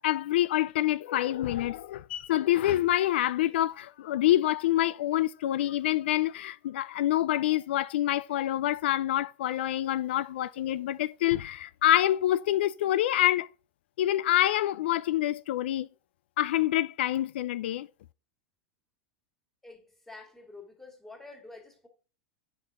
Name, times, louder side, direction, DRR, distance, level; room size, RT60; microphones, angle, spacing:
voice 1, 0.0-13.5 14.0-15.9 16.4-17.9, left 13 dB, 75° left, 0.4 m, -26 dB
voice 2, 19.6-21.9, left 3 dB, 5° left, 2.3 m, -48 dB
8.1 x 6.0 x 3.7 m
supercardioid pair, 125°, 6 cm